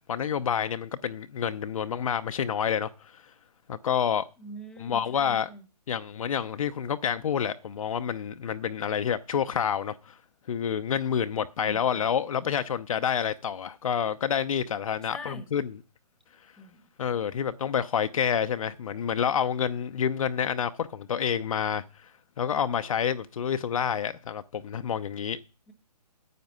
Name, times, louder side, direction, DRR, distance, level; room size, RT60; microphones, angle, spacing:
voice 1, 0.1-3.2 3.7-4.2 4.8-5.5 5.9-10.2 10.5-15.7 17.0-21.8 22.4-25.4, left 8 dB, 55° left, 0.7 m, -28 dB
voice 2, 4.4-5.7 11.6-12.1 15.0-15.5 16.6-16.9 25.7-25.8, right 1 dB, 5° left, 1.2 m, -44 dB
9.5 x 8.6 x 5.5 m
hypercardioid pair, 140°, 21 cm